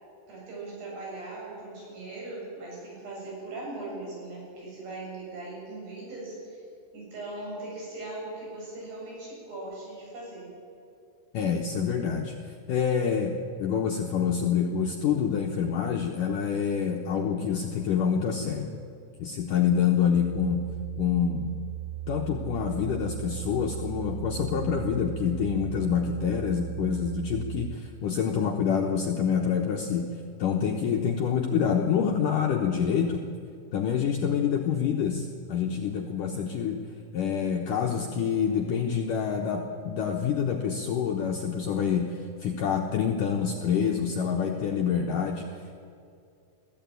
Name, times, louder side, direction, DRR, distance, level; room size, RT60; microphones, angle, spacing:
voice 1, 0.3-6.6 6.9-10.5, right 2 dB, 65° right, -4 dB, 9.6 m, -39 dB
voice 2, 11.3-18.7 19.2-20.6 21.0-21.5 22.1-30.1 30.4-33.2 33.7-36.8 37.1-45.7, left 7 dB, 70° left, 1 dB, 2.1 m, -27 dB
sound 1, 20.1-27.8, right 14 dB, 85° right, 3.1 m, -37 dB
21.5 x 15.0 x 9.1 m, 2.5 s
omnidirectional pair, 5.1 m